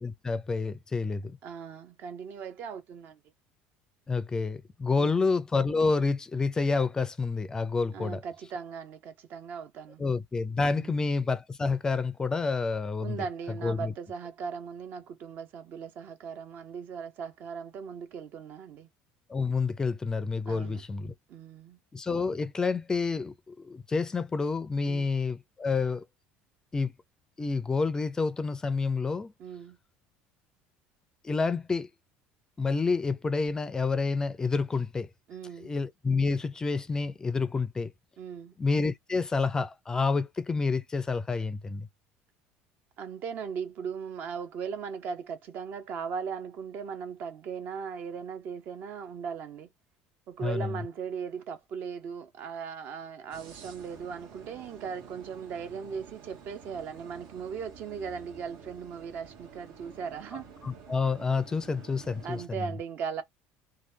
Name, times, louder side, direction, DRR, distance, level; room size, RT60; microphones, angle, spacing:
voice 1, 0.0-1.4 4.1-8.2 10.0-13.2 13.6-13.9 19.3-21.1 21.9-26.0 26.7-26.9 27.4-29.3 31.2-31.9 32.6-35.1 35.6-37.9 38.6-41.9 50.4-50.8 60.6-62.7, left 4 dB, 15° left, 0.4 m, -29 dB
voice 2, 1.4-3.2 5.0-5.3 7.9-10.0 10.8-11.1 13.0-18.9 20.5-20.8 21.3-21.8 24.8-25.1 29.4-29.8 35.3-35.7 38.2-38.5 43.0-49.7 50.3-60.5 62.2-63.2, right 6 dB, 55° right, 0.8 m, -38 dB
sound 1, 53.3-62.5, right 6 dB, 75° right, 1.5 m, -50 dB
3.1 x 2.2 x 2.8 m
cardioid pair, 120°, 4 cm